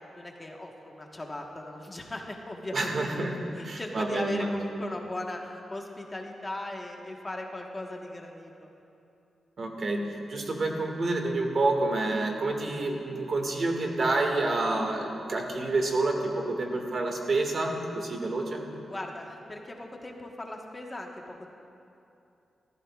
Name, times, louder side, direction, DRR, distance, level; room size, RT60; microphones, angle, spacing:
voice 1, 0.2-2.9 3.6-8.7 18.9-21.5, left 1 dB, 20° left, 0 dB, 1.3 m, -38 dB
voice 2, 2.7-4.5 9.6-18.7, right 2 dB, 50° right, 1 dB, 1.9 m, -28 dB
25.5 x 15.0 x 2.4 m, 2.7 s
wide cardioid pair, 145°, 0 cm